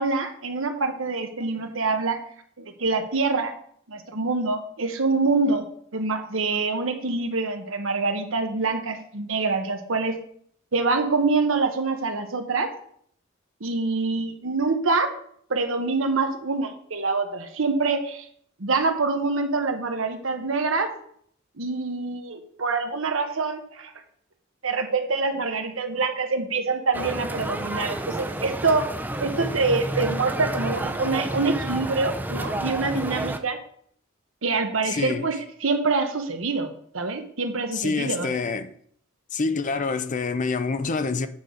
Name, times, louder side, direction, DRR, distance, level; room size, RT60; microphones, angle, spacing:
voice 1, 0.0-2.2 2.6-3.5 3.9-5.6 5.9-10.2 10.7-12.7 13.6-15.1 15.5-18.3 18.6-20.9 21.6-23.9 24.6-28.9 29.2-33.6 34.4-38.3, right 3 dB, 80° right, 1.1 m, -25 dB
sound 1, 26.9-33.4, right 1 dB, 10° right, 0.6 m, -30 dB
voice 2, 34.8-35.3 37.7-38.7 39.3-41.3, left 4 dB, 40° left, 0.5 m, -26 dB
8.8 x 4.0 x 6.3 m
head